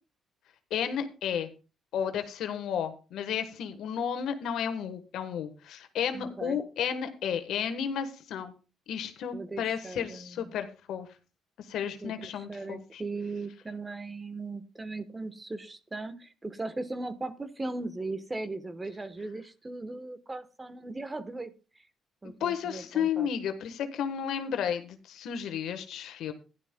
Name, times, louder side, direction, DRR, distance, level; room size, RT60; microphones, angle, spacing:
voice 1, 0.7-1.5 1.9-8.5 8.9-11.1 11.6-13.0 22.4-26.3, left 8 dB, 75° left, 9 dB, 1.2 m, -32 dB
voice 2, 6.1-6.6 9.3-10.5 12.0-21.5 22.2-23.3, right 2 dB, 20° right, 12 dB, 1.0 m, -38 dB
15.5 x 11.0 x 2.2 m, 0.33 s
cardioid pair, 75°, 0 cm